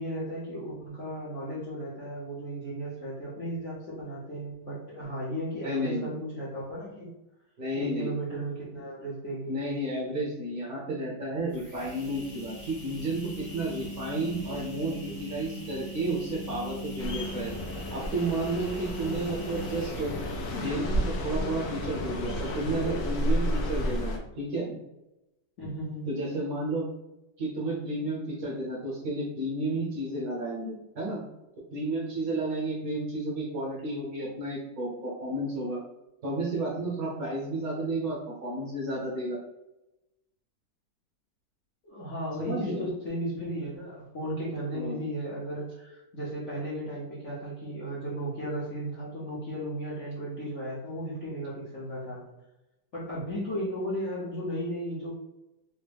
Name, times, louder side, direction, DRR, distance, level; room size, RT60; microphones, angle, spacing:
voice 1, 0.0-7.1 7.8-9.6 25.6-26.0 41.8-52.2 52.9-55.1, equal, 55° left, -9 dB, 0.8 m, -35 dB
voice 2, 5.6-6.1 7.6-8.1 9.5-17.5 17.9-20.1 20.5-24.8 26.0-26.8 27.4-31.2 31.7-35.8 36.2-39.4 42.4-42.8 44.7-45.0, right 2 dB, 55° right, -4 dB, 1.2 m, -32 dB
sound 1, 11.5-20.9, left 1 dB, 15° left, 0.6 m, -42 dB
sound 2, 17.0-24.2, equal, 85° left, 0.7 m, -32 dB
3.5 x 2.1 x 3.3 m, 0.94 s
omnidirectional pair, 2.2 m